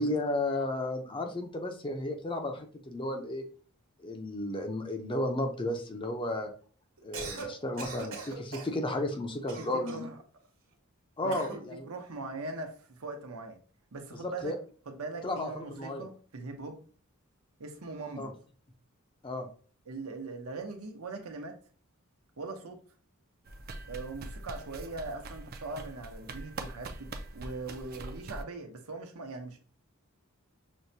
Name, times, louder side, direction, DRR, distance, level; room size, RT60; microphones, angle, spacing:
voice 1, 0.0-3.4 4.0-6.5 7.0-10.1 11.2-11.9 14.2-14.6 15.2-16.1 18.2-18.3 19.2-19.5, left 1 dB, 25° left, 4 dB, 0.5 m, -33 dB
Cough, 7.0-7.5 7.8-8.8 9.5-10.1 11.3-11.6, right 4 dB, 65° right, 1.3 m, -40 dB
voice 2, 9.6-10.2 11.2-13.6 13.9-14.5 14.9-16.8 17.6-18.4 19.9-21.6 22.4-22.8 23.8-29.6, right 3 dB, 85° right, 4 dB, 0.8 m, -41 dB
sound 1, 23.5-28.4, right 2 dB, 45° right, 0.4 m, -43 dB
6.2 x 2.2 x 2.7 m, 0.42 s
head